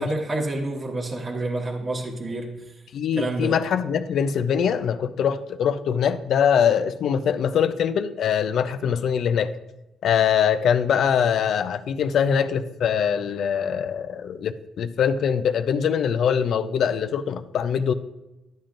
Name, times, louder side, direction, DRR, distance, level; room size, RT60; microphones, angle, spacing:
voice 1, 0.0-2.7 3.1-3.5, right 2 dB, 35° right, 1 dB, 1.0 m, -28 dB
voice 2, 2.9-9.5 10.0-17.9, left 7 dB, 70° left, 11 dB, 0.5 m, -23 dB
11.5 x 7.3 x 2.6 m, 0.97 s
cardioid pair, 90°, 0 cm